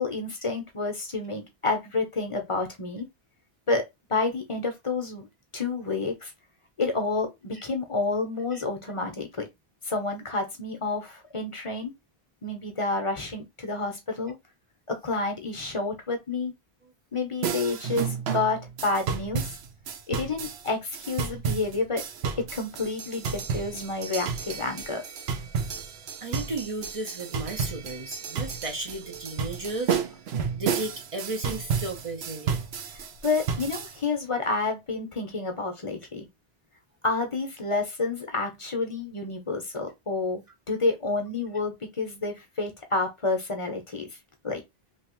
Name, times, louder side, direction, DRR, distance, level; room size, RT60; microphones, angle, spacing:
voice 1, 0.0-3.1 3.7-3.8 4.1-5.3 5.5-6.3 6.8-9.5 9.8-11.9 12.4-14.4 14.9-16.5 17.1-19.6 20.1-22.0 22.4-25.0 32.9-36.3 37.0-44.1 44.4-44.6, left 3 dB, 35° left, 0.7 m, -29 dB
sound 1, 17.4-34.0, right 6 dB, 90° right, 0.9 m, -32 dB
voice 2, 26.2-30.0 30.5-32.6, right 2 dB, 40° right, 0.6 m, -34 dB
2.8 x 2.7 x 3.0 m
omnidirectional pair, 1.0 m